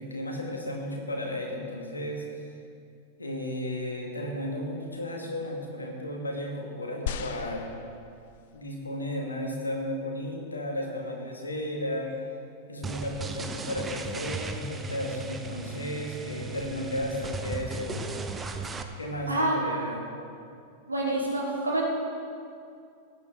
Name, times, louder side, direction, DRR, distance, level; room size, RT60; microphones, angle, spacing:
voice 1, 0.0-2.5 3.2-7.7 8.5-12.2 12.7-18.2 19.0-20.0, left 1 dB, 80° left, 0 dB, 1.9 m, -34 dB
sound 1, 7.1-8.6 9.3-9.4, left 8 dB, 55° left, 0.5 m, -37 dB
sound 2, 12.8-18.8, right 3 dB, 15° right, 0.8 m, -36 dB
voice 2, 19.3-19.6 20.9-21.9, right 2 dB, 85° right, -4 dB, 2.4 m, -27 dB
17.5 x 9.3 x 3.6 m, 2.4 s
figure-of-eight pair, 90°, 0 cm